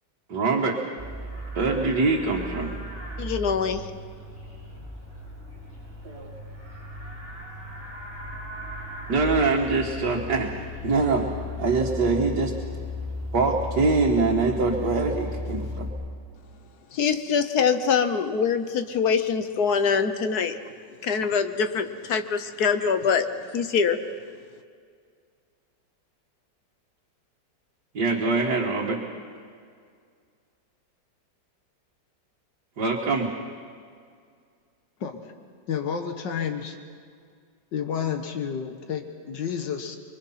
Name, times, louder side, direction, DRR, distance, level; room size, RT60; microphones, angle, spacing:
voice 1, 0.3-0.8 1.6-2.8 6.0-6.3 9.1-10.5 10.8-11.3 11.6-12.5 13.3-15.9 27.9-29.0 32.8-33.3, right 3 dB, 65° right, -2 dB, 2.3 m, -24 dB
Livestock farm animals working animals, 1.0-15.9, left 1 dB, 5° right, 6.4 m, -36 dB
voice 2, 3.2-3.9 16.9-20.6 21.0-23.3 23.5-24.0, left 6 dB, 65° left, 9 dB, 1.5 m, -24 dB
voice 3, 35.0-35.3 35.7-36.8 37.7-40.0, left 7 dB, 80° left, 6 dB, 1.9 m, -30 dB
24.5 x 24.0 x 5.9 m, 2.1 s
omnidirectional pair, 1.9 m